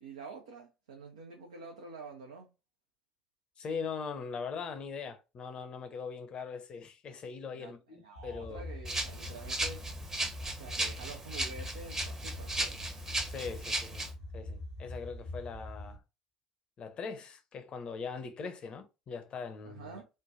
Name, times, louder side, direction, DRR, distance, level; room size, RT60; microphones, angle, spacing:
voice 1, 0.0-2.5 7.5-9.8 10.6-12.8 19.6-20.1, right 4 dB, 75° right, 0.5 m, -48 dB
voice 2, 3.6-8.7 13.3-14.1 14.3-16.0 16.8-20.0, left 5 dB, 40° left, 0.6 m, -41 dB
sound 1, 8.2-16.0, left 1 dB, 85° left, 0.8 m, -44 dB
Rattle (instrument), 8.8-14.1, right 1 dB, 20° right, 0.8 m, -36 dB
3.2 x 2.1 x 2.5 m
figure-of-eight pair, 55°, 3 cm